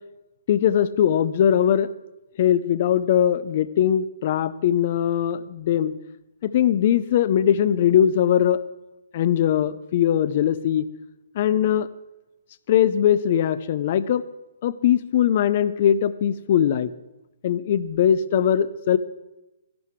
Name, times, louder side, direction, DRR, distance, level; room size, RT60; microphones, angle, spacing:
voice 1, 0.5-1.9 2.4-5.9 6.4-8.6 9.1-10.9 11.4-11.9 12.7-14.2 14.6-16.9 17.4-19.0, left 10 dB, 35° left, 15 dB, 0.5 m, -20 dB
13.5 x 11.5 x 4.6 m, 0.98 s
hypercardioid pair, 170°, 0 cm